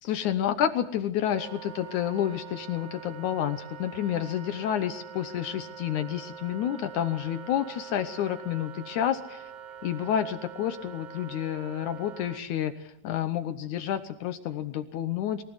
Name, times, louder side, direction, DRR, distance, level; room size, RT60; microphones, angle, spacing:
voice 1, 0.0-9.5 9.8-15.4, left 10 dB, 75° left, 8 dB, 2.3 m, -29 dB
Wind instrument woodwind instrument, 1.2-12.4, right 8 dB, 60° right, 1.4 m, -44 dB
23.5 x 16.0 x 8.0 m, 0.84 s
omnidirectional pair, 3.6 m